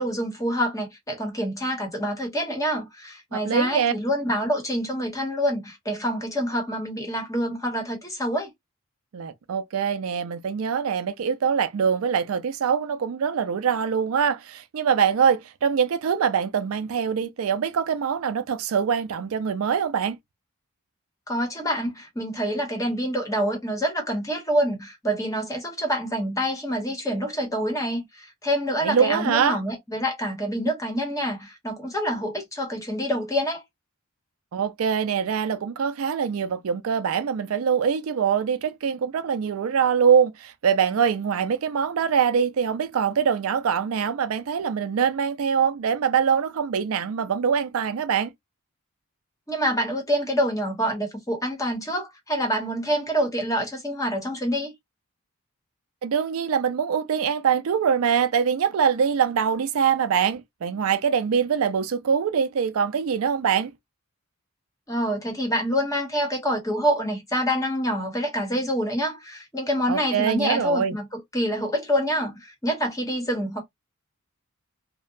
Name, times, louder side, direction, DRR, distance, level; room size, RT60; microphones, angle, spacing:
voice 1, 0.0-8.5 21.3-33.6 49.5-54.7 64.9-73.6, equal, 15° left, 0.9 m, -26 dB
voice 2, 3.3-3.9 9.1-20.2 28.8-29.6 34.5-48.3 56.0-63.7 69.9-71.0, right 7 dB, 70° right, 0.4 m, -23 dB
2.7 x 2.1 x 2.4 m
head